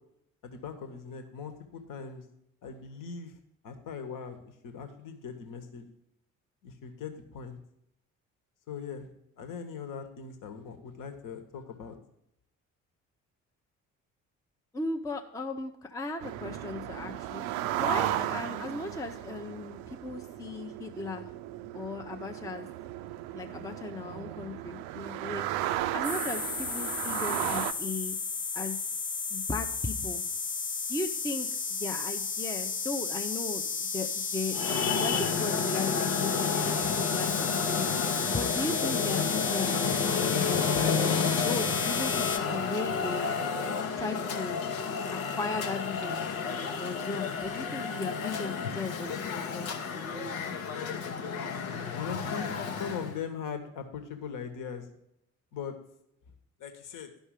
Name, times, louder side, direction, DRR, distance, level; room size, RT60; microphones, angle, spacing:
voice 1, 0.4-2.2 2.6-3.3 3.6-5.8 6.6-7.6 8.7-11.9 51.9-54.8 55.5-55.7 56.6-57.1, left 6 dB, 50° left, 7 dB, 1.2 m, -40 dB
voice 2, 14.7-17.5 17.8-21.2 21.7-22.7 23.3-25.5 25.9-28.2 28.5-28.8 29.3-30.2 30.9-31.5 31.8-41.0 41.3-43.3 44.0-44.6 45.1-46.2 46.8-49.7, left 3 dB, 10° left, 4 dB, 0.6 m, -37 dB
sound 1, 16.2-27.7, right 13 dB, 60° right, 0.5 m, -35 dB
sound 2, 26.0-42.4, left 5 dB, 35° left, 0.9 m, -33 dB
Traffic noise roadway noise, 34.5-53.2, left 6 dB, 75° left, 0.9 m, -31 dB
12.0 x 5.4 x 4.8 m, 0.80 s
figure-of-eight pair, 45°, 41 cm